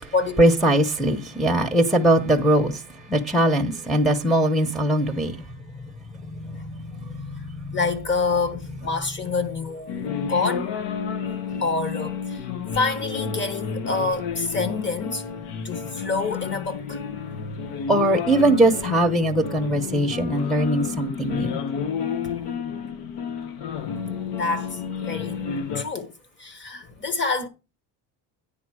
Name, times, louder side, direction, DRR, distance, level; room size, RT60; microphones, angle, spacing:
voice 1, 0.4-2.8 3.1-5.4 6.3-7.8 17.9-21.6, right 1 dB, ahead, 0.9 m, -21 dB
voice 2, 7.7-10.7 11.6-12.4 12.7-15.2 15.6-17.0 24.4-25.4 25.7-26.1 26.4-27.5, left 4 dB, 25° left, 1.4 m, -27 dB
sound 1, 9.9-25.8, left 6 dB, 80° left, 1.3 m, -31 dB
9.9 x 3.9 x 6.2 m
cardioid pair, 140°, 41 cm